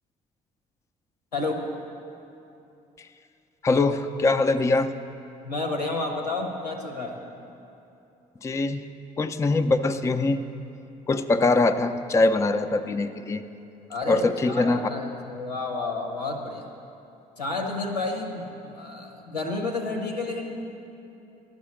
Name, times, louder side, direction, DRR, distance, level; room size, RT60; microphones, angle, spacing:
voice 1, 1.3-1.6 5.4-7.2 13.9-16.6 17.4-20.5, left 3 dB, 85° left, 2 dB, 1.0 m, -30 dB
voice 2, 3.6-4.9 8.4-8.8 9.2-10.4 11.1-13.4 14.1-14.8, left 3 dB, 15° left, 8 dB, 0.4 m, -22 dB
11.5 x 6.2 x 7.6 m, 2.8 s
figure-of-eight pair, 45°, 20 cm